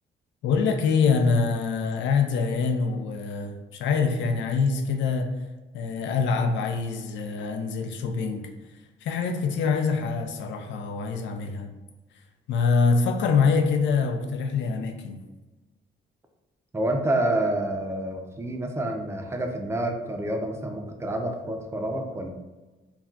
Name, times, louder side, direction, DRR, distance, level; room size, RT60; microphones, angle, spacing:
voice 1, 0.4-5.3 5.7-8.5 9.0-11.7 12.5-15.2, left 5 dB, 70° left, 6 dB, 0.4 m, -25 dB
voice 2, 16.7-22.3, right 1 dB, 15° right, 3 dB, 0.4 m, -28 dB
2.3 x 2.2 x 3.7 m, 1.2 s
cardioid pair, 90°, 20 cm